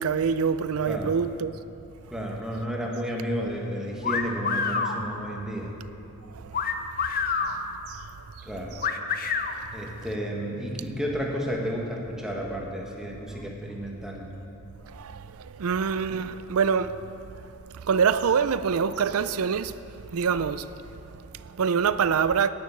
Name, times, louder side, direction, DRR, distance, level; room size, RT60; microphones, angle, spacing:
voice 1, 0.0-1.6 6.3-6.6 7.4-7.6 7.9-8.1 14.9-19.8 20.1-22.5, right 6 dB, 75° right, 0.5 m, -26 dB
voice 2, 2.1-5.7 8.4-8.8 9.7-14.3, equal, 5° right, 1.6 m, -32 dB
sound 1, 4.0-5.0 6.5-7.6 8.8-9.5, left 5 dB, 40° left, 0.7 m, -26 dB
10.0 x 9.6 x 8.4 m
head